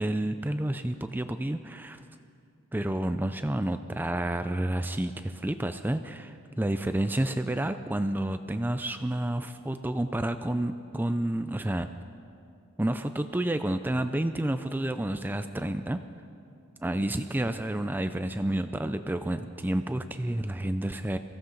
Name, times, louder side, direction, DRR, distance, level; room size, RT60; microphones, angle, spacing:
voice 1, 0.0-2.0 2.7-11.9 12.8-16.0 16.8-21.2, right 1 dB, 10° right, 9 dB, 0.3 m, -30 dB
23.0 x 16.0 x 3.9 m, 2.5 s
head